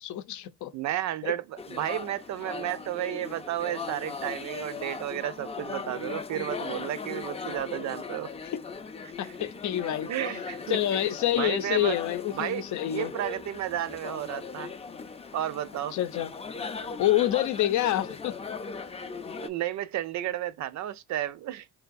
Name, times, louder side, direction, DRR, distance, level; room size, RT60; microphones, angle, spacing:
voice 1, 0.0-0.7 1.2-1.3 8.5-8.6 9.2-10.1 10.7-13.1 15.9-16.3 17.0-18.4, left 13 dB, 75° left, 0.6 m, -27 dB
voice 2, 0.7-8.3 9.2-9.3 10.1-11.0 11.4-12.0 12.3-14.7 15.3-16.0 19.4-21.7, right 12 dB, 65° right, 0.5 m, -32 dB
sound 1, 1.6-19.5, left 4 dB, 20° left, 0.4 m, -39 dB
3.9 x 3.3 x 2.5 m
cardioid pair, 90°, 30 cm